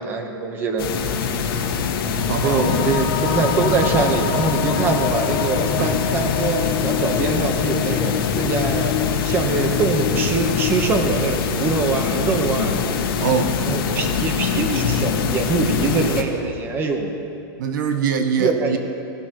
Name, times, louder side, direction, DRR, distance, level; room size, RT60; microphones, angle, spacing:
voice 1, 0.0-1.4 2.4-9.0 9.2-12.8 13.6-17.2 18.4-18.8, right 4 dB, 15° right, 4 dB, 0.9 m, -23 dB
sound 1, 0.8-16.2, left 6 dB, 75° left, 1.5 m, -24 dB
sound 2, 2.1-13.0, left 9 dB, 35° left, 0.7 m, -27 dB
voice 2, 2.2-2.7 5.8-6.0 13.2-14.1 17.6-18.8, right 7 dB, 55° right, 8 dB, 0.8 m, -24 dB
19.0 x 12.0 x 3.0 m, 2.5 s
supercardioid pair, 170°, 12 cm